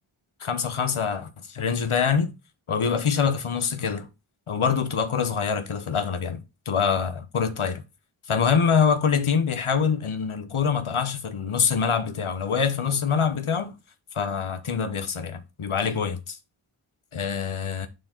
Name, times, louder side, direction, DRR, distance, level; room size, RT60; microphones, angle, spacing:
voice 1, 0.4-2.3 2.7-4.1 4.5-7.8 8.3-13.7 14.1-16.4 17.1-17.9, left 6 dB, 80° left, 0.9 m, -25 dB
6.4 x 4.5 x 4.3 m
wide cardioid pair, 45°, 49 cm